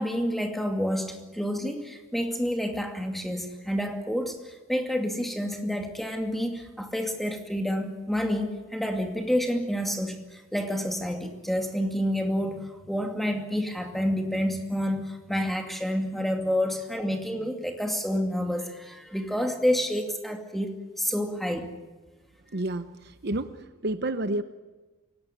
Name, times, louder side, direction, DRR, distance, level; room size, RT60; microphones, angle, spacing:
voice 1, 0.0-21.7, equal, ahead, 3 dB, 2.4 m, -29 dB
voice 2, 22.5-24.4, right 2 dB, 50° right, 11 dB, 0.9 m, -30 dB
24.0 x 18.5 x 9.9 m, 1.2 s
head